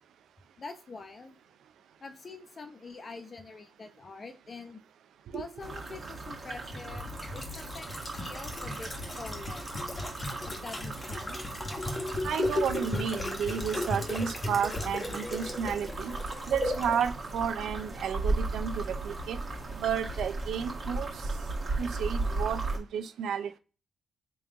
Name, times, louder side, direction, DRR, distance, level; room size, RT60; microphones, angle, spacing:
voice 1, 0.6-1.4 2.0-4.8 5.3-9.9 10.4-11.4, left 4 dB, 40° left, 0.9 m, -45 dB
sound 1, 5.6-22.8, right 2 dB, 40° right, 1.8 m, -37 dB
sound 2, 6.7-17.1 17.4-17.5, left 2 dB, 25° left, 1.2 m, -35 dB
voice 2, 12.2-16.2 16.5-19.4 19.8-21.1 21.8-23.6, right 8 dB, 80° right, 0.5 m, -32 dB
sound 3, 14.8-15.3 15.6-16.2 16.5-17.1 17.4-18.0 18.3-21.9, left 3 dB, 10° left, 1.8 m, -46 dB
3.5 x 3.0 x 3.7 m
cardioid pair, 70°, 0 cm